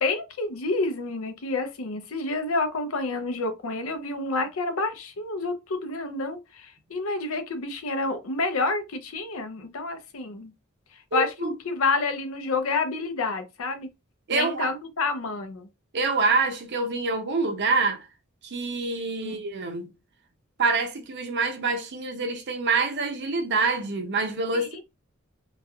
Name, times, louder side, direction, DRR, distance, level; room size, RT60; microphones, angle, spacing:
voice 1, 0.0-10.5 11.1-13.9 14.3-15.7 19.2-19.4 24.5-24.8, left 3 dB, 70° left, 0.6 m, -29 dB
voice 2, 11.1-11.5 14.3-14.7 15.9-18.1 18.4-19.9 20.6-24.8, right 4 dB, 55° right, 0.7 m, -26 dB
3.0 x 2.7 x 2.4 m
head